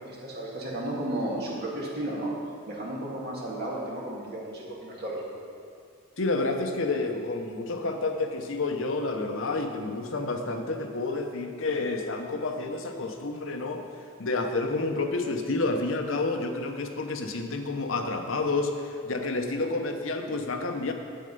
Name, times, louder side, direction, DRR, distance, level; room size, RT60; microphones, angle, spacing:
voice 1, 0.0-2.3 2.7-5.2, right 1 dB, 45° right, -4 dB, 2.0 m, -33 dB
voice 2, 6.2-13.8 14.2-20.9, left 3 dB, 65° left, 5 dB, 0.8 m, -29 dB
9.0 x 7.7 x 5.3 m, 2.3 s
head